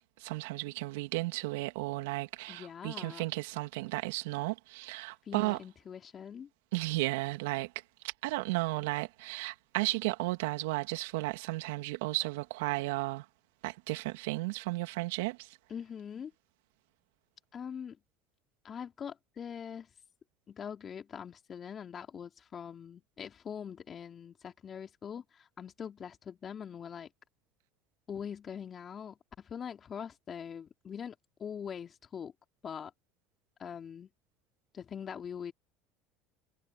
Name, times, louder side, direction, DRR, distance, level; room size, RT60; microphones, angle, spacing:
voice 1, 0.2-5.6 6.7-7.7 8.0-13.2 13.6-15.6, right 22 dB, 75° right, 2.8 m, -34 dB
voice 2, 2.5-3.2 5.2-6.5 15.7-16.3 17.5-18.0 18.6-19.9 20.5-27.1 28.1-31.1 31.4-32.3 32.6-32.9 33.6-34.1 34.7-35.5, left 7 dB, 40° left, 2.9 m, -43 dB
hypercardioid pair, 80°, 0 cm